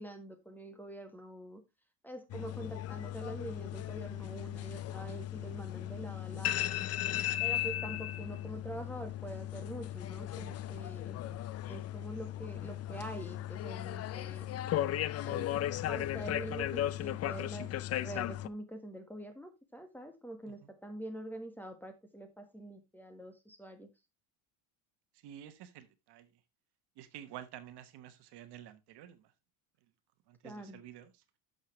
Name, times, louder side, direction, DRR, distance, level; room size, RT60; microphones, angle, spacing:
voice 1, 0.0-1.6 2.0-6.8 7.4-11.2 11.7-14.5 15.2-15.5 15.9-17.7 17.9-23.9 30.4-30.8, right 1 dB, 5° left, 1.5 m, -45 dB
sound 1, 2.3-18.5, left 13 dB, 35° left, 0.4 m, -36 dB
voice 2, 25.2-26.3 27.0-29.3 30.3-31.2, right 11 dB, 60° right, 1.3 m, -50 dB
11.5 x 6.7 x 3.1 m
cardioid pair, 135°, 45 cm